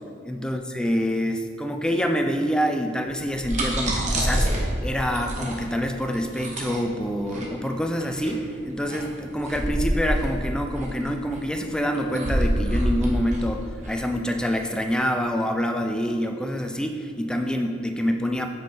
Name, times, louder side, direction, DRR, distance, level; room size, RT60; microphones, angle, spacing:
voice 1, 0.3-18.5, equal, 5° left, 4 dB, 0.4 m, -26 dB
sound 1, 3.1-14.5, right 1 dB, 35° right, 1.2 m, -27 dB
7.9 x 5.5 x 4.3 m, 2.5 s
head